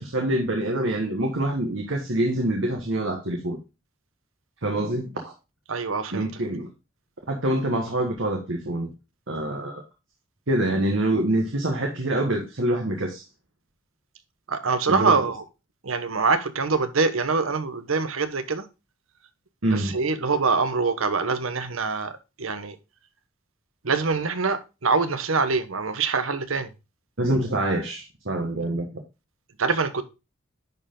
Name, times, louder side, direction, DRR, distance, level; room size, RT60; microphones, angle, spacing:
voice 1, 0.0-3.6 4.6-5.3 6.1-6.7 7.3-8.9 9.3-9.8 10.5-13.2 14.9-15.2 19.6-20.0 27.2-28.9, right 1 dB, 70° right, 1.5 m, -25 dB
voice 2, 5.7-6.3 14.5-15.4 15.8-18.7 19.7-22.7 23.8-26.7 29.6-30.0, right 4 dB, 85° right, 1.1 m, -24 dB
10.5 x 4.6 x 3.7 m
head